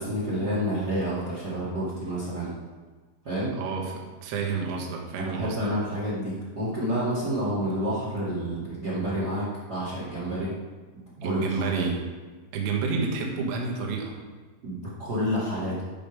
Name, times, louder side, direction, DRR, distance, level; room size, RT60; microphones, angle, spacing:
voice 1, 0.0-2.5 3.2-3.6 5.2-10.5 11.2-11.6 14.6-15.8, equal, 65° right, -8 dB, 0.9 m, -29 dB
voice 2, 3.6-5.7 11.2-12.0 12.5-14.2, right 4 dB, 90° right, 0 dB, 3.9 m, -29 dB
13.5 x 5.3 x 5.1 m, 1.4 s
omnidirectional pair, 5.6 m